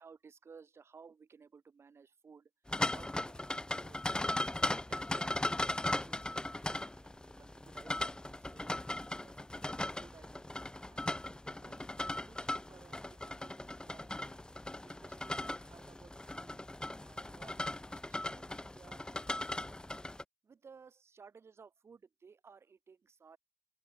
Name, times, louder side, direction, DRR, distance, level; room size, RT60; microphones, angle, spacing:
voice 1, 0.0-2.5 2.9-7.1 7.4-8.8 9.2-10.5 10.9-14.5 14.8-16.6 17.0-19.8 20.4-23.4, right 5 dB, 80° right, 1.8 m, -59 dB
sound 1, 2.7-20.2, left 1 dB, 20° left, 0.8 m, -38 dB
open air
cardioid pair, 50°, 4 cm